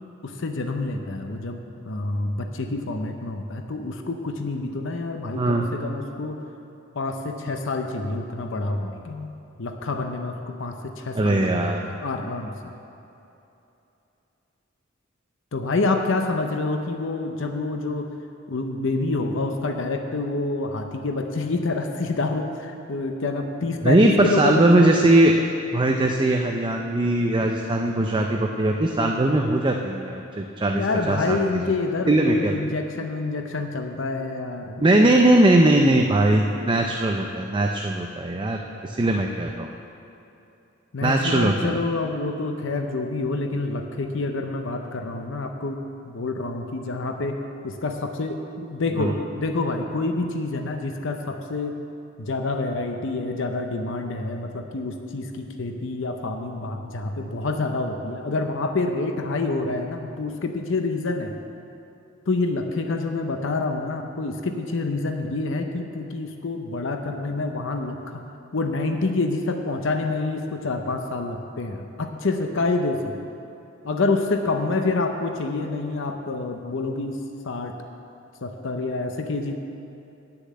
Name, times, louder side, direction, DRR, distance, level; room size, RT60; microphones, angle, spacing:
voice 1, 0.2-6.4 6.9-9.3 9.6-12.5 15.5-18.1 18.5-24.9 30.7-35.0 40.9-47.4 47.6-51.8 52.2-61.3 62.3-68.2 68.5-73.2 73.8-77.8 78.4-79.6, left 3 dB, 65° left, 5 dB, 0.7 m, -27 dB
voice 2, 11.1-11.8 23.8-25.3 25.7-31.6 32.1-32.6 34.8-39.7 41.0-41.8 49.0-49.1, right 1 dB, 25° right, 2 dB, 0.5 m, -20 dB
9.7 x 6.7 x 8.4 m, 2.9 s
head